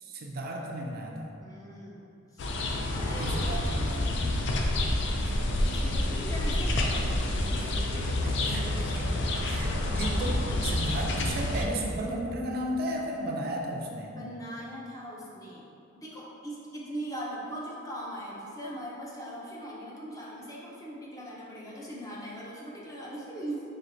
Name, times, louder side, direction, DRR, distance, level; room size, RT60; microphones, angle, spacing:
voice 1, 0.0-1.3 3.1-4.1 7.6-7.7 8.2-9.2 9.4-14.1, right 1 dB, 50° right, 0 dB, 0.4 m, -34 dB
voice 2, 1.4-2.1 2.3-2.5 2.9-3.5 5.1-6.7 14.1-15.7 16.0-23.6, right 1 dB, 20° left, -5 dB, 0.6 m, -40 dB
sound 1, 2.4-11.6, left 1 dB, 65° left, 0.4 m, -28 dB
4.3 x 3.3 x 2.6 m, 2.7 s
head